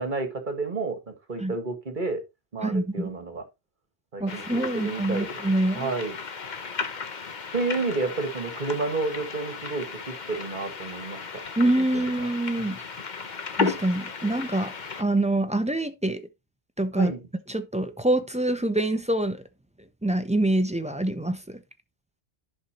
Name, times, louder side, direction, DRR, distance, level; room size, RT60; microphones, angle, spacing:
voice 1, 0.0-2.2 2.5-3.4 4.1-5.4 5.7-6.2 7.5-11.2 11.9-12.1 12.6-12.8 14.2-14.3 16.9-17.2, right 3 dB, 45° right, 1.7 m, -30 dB
voice 2, 2.6-3.1 4.2-5.9 11.6-12.8 13.6-14.7 15.0-16.2 16.8-17.1 17.5-19.4 20.0-21.6, right 1 dB, 10° right, 0.6 m, -25 dB
sound 1, 4.3-15.0, left 5 dB, 45° left, 1.0 m, -35 dB
10.5 x 5.8 x 2.9 m
omnidirectional pair, 1.1 m